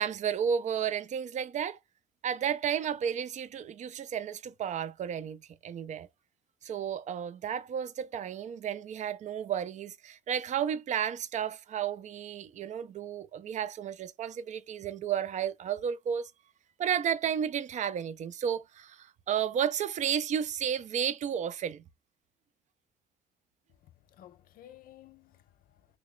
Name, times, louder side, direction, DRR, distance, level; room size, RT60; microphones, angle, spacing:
voice 1, 0.0-1.8 2.2-6.1 6.6-16.3 16.8-21.8, right 8 dB, 45° right, 0.5 m, -32 dB
voice 2, 23.7-26.0, left 12 dB, 60° left, 0.5 m, -55 dB
3.3 x 2.3 x 3.7 m
cardioid pair, 110°, 17 cm